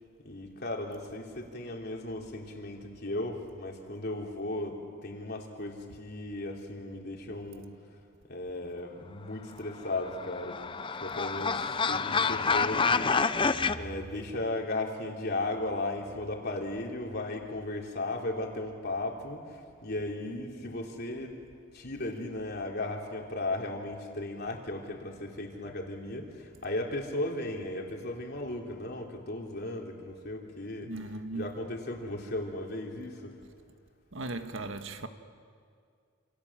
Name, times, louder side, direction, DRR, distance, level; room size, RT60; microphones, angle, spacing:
voice 1, 0.3-7.6 8.3-10.6 11.0-11.6 11.9-13.2 13.7-19.4 19.8-21.3 21.7-30.9 31.3-33.3, left 2 dB, 50° left, 3.5 m, -36 dB
sound 1, 9.9-13.8, left 5 dB, 25° left, 0.6 m, -28 dB
voice 2, 30.8-31.6 34.1-35.1, right 2 dB, 70° right, 1.5 m, -37 dB
28.0 x 28.0 x 7.5 m
head